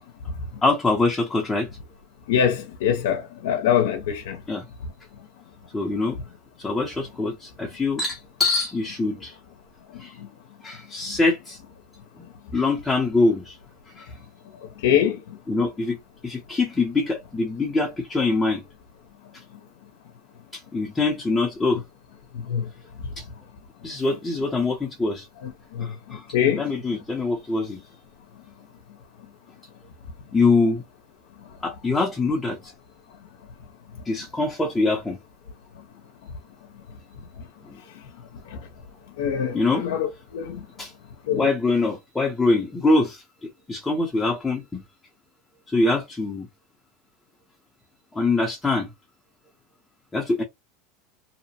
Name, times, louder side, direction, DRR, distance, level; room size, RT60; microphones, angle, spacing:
voice 1, 0.6-1.7 4.5-4.6 5.7-6.2 6.6-9.3 10.0-10.2 10.6-11.6 12.2-12.3 12.5-13.6 14.0-14.1 15.5-16.0 16.2-18.6 20.5-21.8 23.2-23.3 23.8-25.3 25.8-26.2 26.6-27.8 30.3-30.8 31.6-32.7 34.0-35.2 37.6-37.8 39.5-39.9 40.8-40.9 41.3-44.8 45.7-46.5 48.1-48.9 50.1-50.4, left 3 dB, 10° left, 0.6 m, -24 dB
voice 2, 2.3-4.4 9.9-10.3 14.8-15.4 22.4-22.7 25.4-26.7 38.5-38.6 39.2-40.1 40.3-40.6 41.3-41.5, left 9 dB, 80° left, 0.6 m, -24 dB
2.8 x 2.1 x 2.8 m
supercardioid pair, 145°, 0 cm